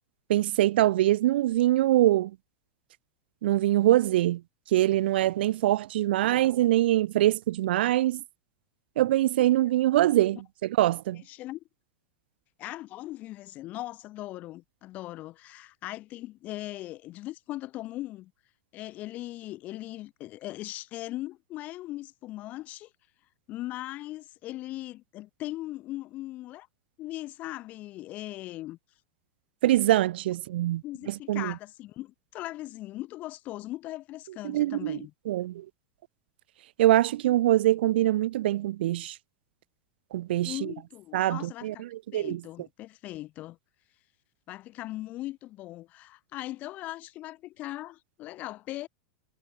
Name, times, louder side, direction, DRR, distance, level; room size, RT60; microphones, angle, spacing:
voice 1, 0.3-2.3 3.4-4.4 4.7-8.2 9.0-11.2 29.6-31.5 34.4-35.0 35.3-35.7 36.8-39.2 40.1-40.7 41.1-42.4, right 14 dB, 70° right, 0.5 m, -24 dB
voice 2, 11.3-11.6 12.6-18.3 18.7-22.9 23.5-26.7 27.0-28.8 30.8-35.1 40.4-41.8 42.1-43.6 44.5-48.9, left 16 dB, 25° left, 0.9 m, -39 dB
supercardioid pair, 175°, 6 cm